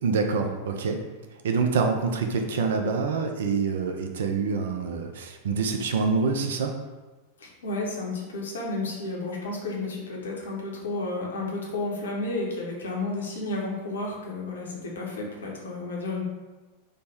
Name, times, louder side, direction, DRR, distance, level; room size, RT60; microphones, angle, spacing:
voice 1, 0.0-1.0 1.4-6.8, right 4 dB, 60° right, 4 dB, 0.4 m, -26 dB
voice 2, 7.4-16.2, left 2 dB, 65° left, -2 dB, 0.8 m, -32 dB
3.2 x 2.1 x 4.1 m, 1.2 s
figure-of-eight pair, 90°, 0 cm